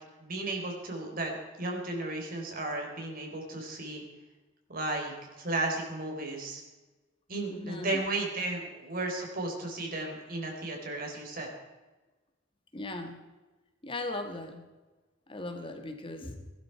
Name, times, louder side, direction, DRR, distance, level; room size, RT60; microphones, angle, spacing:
voice 1, 0.2-4.0 4.7-6.6 7.3-11.5, right 2 dB, 50° right, 1 dB, 4.0 m, -34 dB
voice 2, 7.5-8.0 12.7-13.2 13.8-14.6 15.3-16.5, left 2 dB, 30° left, 6 dB, 2.1 m, -38 dB
20.0 x 12.5 x 4.7 m, 1.2 s
head